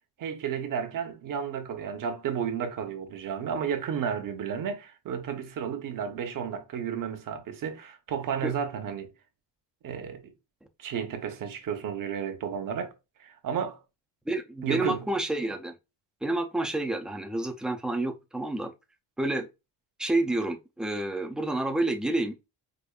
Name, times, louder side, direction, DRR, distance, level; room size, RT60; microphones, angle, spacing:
voice 1, 0.2-9.1 9.8-10.3 10.8-12.9 13.2-13.8 14.6-15.1, right 7 dB, 45° right, 0.9 m, -32 dB
voice 2, 14.3-15.7 16.2-18.7 19.2-19.5 20.0-22.3, right 2 dB, ahead, 0.4 m, -29 dB
5.0 x 2.5 x 2.4 m
cardioid pair, 125°, 44 cm